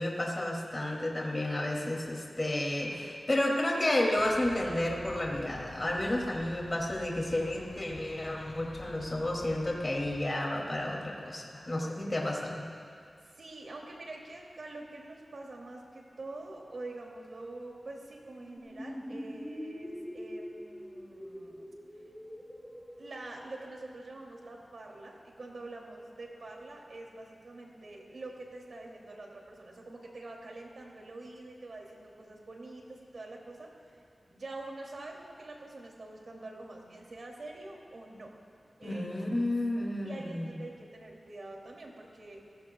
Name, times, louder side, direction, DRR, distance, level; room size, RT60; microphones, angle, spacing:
voice 1, 0.0-12.6 38.8-40.5, left 1 dB, 30° left, -2 dB, 2.5 m, -31 dB
sound 1, 4.2-10.2, left 2 dB, 70° left, 1.6 m, -49 dB
voice 2, 11.8-12.3 13.3-21.7 23.0-34.0 34.4-38.3 38.8-39.0 40.0-42.4, right 2 dB, 65° right, -1 dB, 2.7 m, -46 dB
sound 2, 18.6-23.9, equal, ahead, 3.4 m, -43 dB
30.0 x 16.5 x 2.3 m, 2.4 s
wide cardioid pair, 105°, 0 cm